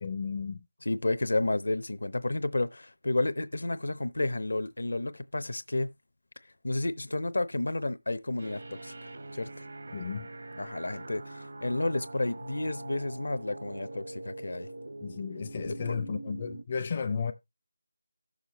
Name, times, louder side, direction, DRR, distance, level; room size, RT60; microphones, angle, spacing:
voice 1, 0.0-0.6 9.9-10.3 15.0-17.3, left 5 dB, 30° left, 0.5 m, -33 dB
voice 2, 0.8-5.9 6.6-8.9 9.3-9.5 10.6-14.7 15.9-16.0, left 2 dB, 75° left, 0.8 m, -31 dB
sound 1, 8.4-16.6, right 2 dB, 60° right, 0.8 m, -43 dB
14.5 x 6.5 x 3.0 m
figure-of-eight pair, 170°, 0 cm